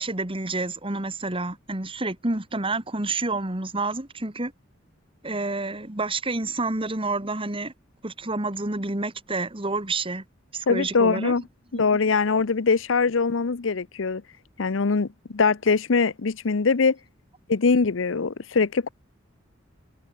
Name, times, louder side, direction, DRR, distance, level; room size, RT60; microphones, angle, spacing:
voice 1, 0.0-4.5 5.2-7.7 8.0-10.2 10.5-11.3, right 3 dB, 30° right, 2.1 m, -29 dB
voice 2, 10.7-11.4 11.7-14.2 14.6-17.0 17.5-18.9, left 4 dB, 75° left, 0.7 m, -22 dB
head